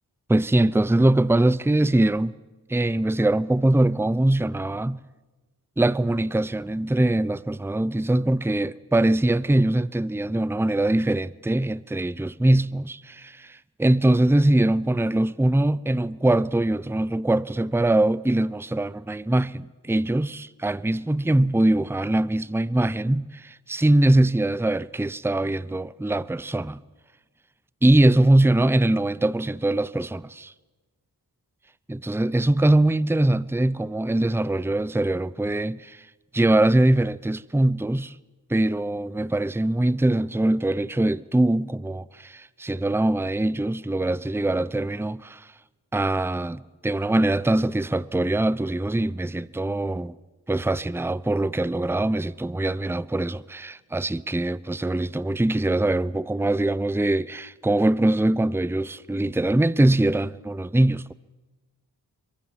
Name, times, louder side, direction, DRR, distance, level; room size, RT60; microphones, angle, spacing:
voice 1, 0.3-2.4 2.7-5.0 5.8-26.8 27.8-30.5 31.9-36.1 36.3-38.2 38.5-45.5 45.9-50.2 50.5-61.1, right 1 dB, 5° right, 0.7 m, -22 dB
24.5 x 23.0 x 7.5 m
cardioid pair, 50°, 40 cm